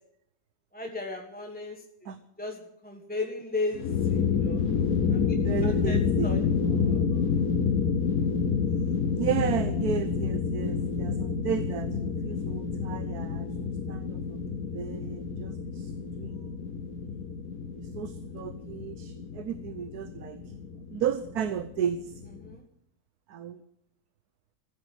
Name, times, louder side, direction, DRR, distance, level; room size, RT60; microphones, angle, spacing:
voice 1, 0.7-2.1 2.4-4.7 5.1-5.2 5.6-6.4 6.8-7.0 22.4-22.6, left 2 dB, 5° left, 2 dB, 1.4 m, -36 dB
sound 1, 3.7-22.5, left 6 dB, 80° left, 1.6 m, -29 dB
voice 2, 5.3-7.4 9.1-13.5 13.9-14.4 14.7-15.9 16.2-16.8 17.8-20.4 20.9-22.1 23.3-23.6, right 8 dB, 80° right, 11 dB, 1.4 m, -34 dB
15.0 x 8.9 x 9.8 m, 0.76 s
omnidirectional pair, 1.6 m